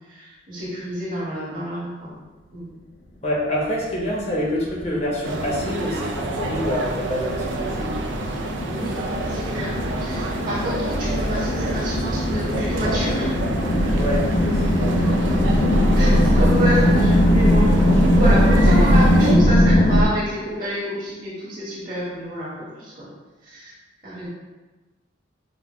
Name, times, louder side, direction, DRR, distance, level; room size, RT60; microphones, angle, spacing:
voice 1, 0.1-2.1 2.5-2.7 8.7-9.0 9.3-13.3 13.6-13.9 15.9-17.9 18.2-23.1 23.4-23.7 24.0-24.3, equal, 45° right, -8 dB, 1.5 m, -29 dB
voice 2, 3.2-8.0 13.6-15.1, equal, 35° left, -4 dB, 0.7 m, -27 dB
sound 1, 4.6-20.0, equal, 80° left, 0.6 m, -19 dB
sound 2, 5.2-19.4, right 2 dB, 80° right, 0.4 m, -29 dB
5.2 x 2.1 x 3.1 m, 1.2 s
head